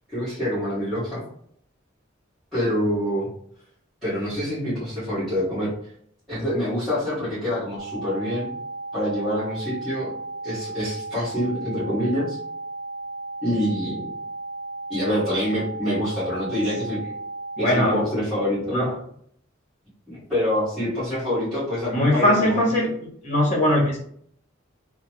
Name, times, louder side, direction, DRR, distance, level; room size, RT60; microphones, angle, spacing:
voice 1, 0.1-1.2 2.5-3.3 4.0-5.7 6.3-8.5 8.9-10.1 10.4-12.4 13.4-14.1 14.9-17.0 17.6-18.8 20.1-22.7, equal, ahead, -16 dB, 1.5 m, -26 dB
sound 1, 7.8-17.8, right 2 dB, 55° right, 0.8 m, -35 dB
voice 2, 17.6-18.0 18.7-18.9 21.9-22.9 23.2-24.0, left 1 dB, 40° left, -2 dB, 1.0 m, -20 dB
3.1 x 2.1 x 3.0 m, 0.64 s
head